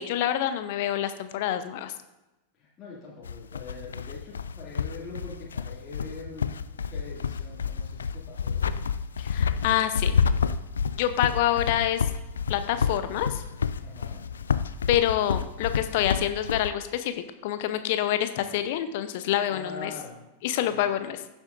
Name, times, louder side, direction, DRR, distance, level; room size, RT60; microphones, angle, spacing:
voice 1, 0.0-1.9 9.2-10.2 11.0-12.0 12.5-13.4 14.9-19.9 20.4-21.2, left 11 dB, 50° left, 10 dB, 0.8 m, -27 dB
voice 2, 2.6-6.6 6.9-8.7 13.8-14.2 19.5-20.3 20.6-20.8, left 3 dB, 25° left, -8 dB, 2.4 m, -43 dB
sound 1, 3.2-16.7, left 6 dB, 70° left, 0.4 m, -29 dB
15.5 x 7.3 x 2.6 m, 1.0 s
figure-of-eight pair, 90°, 0 cm